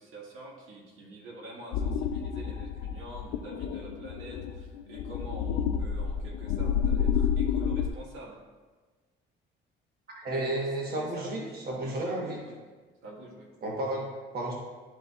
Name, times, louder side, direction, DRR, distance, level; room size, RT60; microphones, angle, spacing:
voice 1, 0.0-8.4 10.3-11.6 12.0-12.6 13.0-13.5, right 2 dB, 75° right, -2 dB, 1.7 m, -46 dB
sound 1, 1.7-7.9, left 7 dB, 80° left, 0.5 m, -30 dB
voice 2, 10.2-12.4 13.6-14.5, right 1 dB, 45° right, -2 dB, 1.2 m, -32 dB
11.5 x 4.0 x 2.4 m, 1.3 s
cardioid pair, 105°, 21 cm